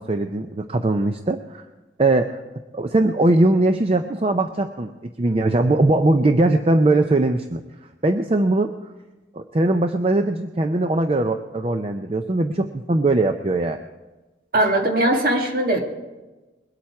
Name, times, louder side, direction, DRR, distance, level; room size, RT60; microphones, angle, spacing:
voice 1, 0.0-1.6 2.0-2.4 2.7-4.9 5.2-7.6 8.0-8.7 9.3-13.8, right 2 dB, 30° right, 7 dB, 0.5 m, -20 dB
voice 2, 14.5-15.8, right 1 dB, 50° right, 2 dB, 1.7 m, -20 dB
21.5 x 8.7 x 4.7 m, 1.2 s
head